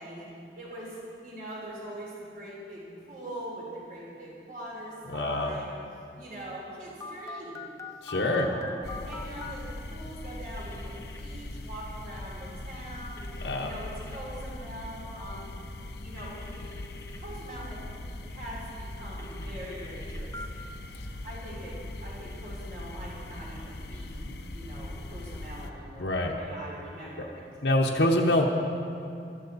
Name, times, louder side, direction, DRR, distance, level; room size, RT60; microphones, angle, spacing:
voice 1, 0.0-5.7 6.1-7.7 8.2-8.7 9.0-15.5 16.0-16.7 17.2-17.9 18.2-20.6 21.2-27.4, right 1 dB, 50° right, -5 dB, 3.7 m, -42 dB
voice 2, 5.1-5.5 8.0-8.5 13.4-13.7 26.0-26.3 27.6-28.5, left 1 dB, 85° left, -1 dB, 1.0 m, -25 dB
Telephone, 7.0-9.5 10.6-11.2 13.2-14.2 16.2-17.2 19.2-20.5, left 3 dB, 15° left, 0.7 m, -44 dB
sound 1, 8.8-25.7, left 1 dB, 65° left, 0.7 m, -40 dB
14.0 x 13.0 x 4.1 m, 2.5 s
head